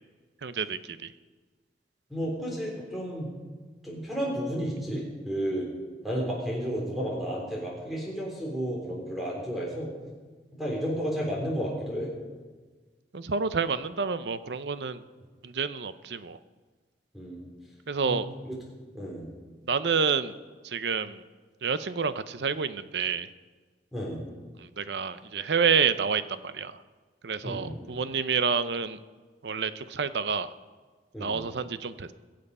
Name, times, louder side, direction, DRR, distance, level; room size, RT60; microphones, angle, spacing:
voice 1, 0.4-1.1 13.1-15.0 15.4-16.4 17.9-18.3 19.7-20.3 20.6-21.2 21.6-23.3 24.8-26.7 27.2-29.0 29.4-30.5 31.2-32.1, right 5 dB, 80° right, 13 dB, 0.6 m, -28 dB
voice 2, 2.1-3.3 3.8-5.7 6.0-9.9 10.5-12.1 17.1-17.5 18.1-18.6 18.9-19.3 23.9-24.2 27.4-27.7 31.1-31.4, equal, ahead, -3 dB, 3.6 m, -32 dB
22.0 x 7.7 x 5.5 m, 1.4 s
head